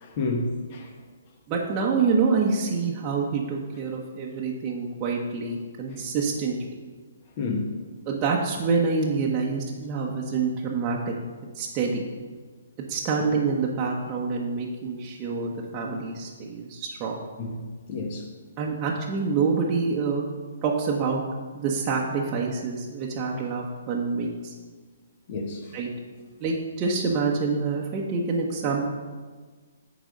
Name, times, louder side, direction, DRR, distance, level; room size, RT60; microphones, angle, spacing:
voice 1, 0.0-0.9 7.4-7.7 13.2-13.3 17.4-17.6 17.9-18.3 25.3-25.7, left 3 dB, 40° left, 2 dB, 1.4 m, -30 dB
voice 2, 1.5-6.8 8.1-11.1 11.5-12.0 12.9-17.2 18.6-20.2 20.6-21.2 21.5-24.5 25.7-25.9 26.4-28.9, right 4 dB, 30° right, -3 dB, 1.0 m, -26 dB
8.9 x 4.0 x 6.4 m, 1.4 s
figure-of-eight pair, 130°, 0 cm